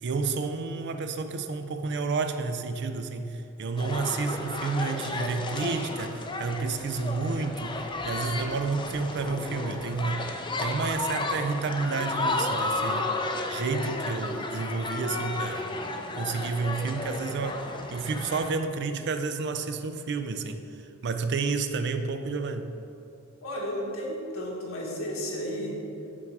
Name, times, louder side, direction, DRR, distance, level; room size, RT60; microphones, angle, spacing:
voice 1, 0.0-10.3 10.6-13.1 13.5-15.7 16.1-20.6 21.0-22.7, right 4 dB, 55° right, 8 dB, 0.4 m, -30 dB
sound 1, 3.8-18.5, left 2 dB, 25° left, 0.5 m, -33 dB
voice 2, 23.4-25.8, equal, 80° left, -3 dB, 1.6 m, -33 dB
6.0 x 4.6 x 6.2 m, 2.7 s
head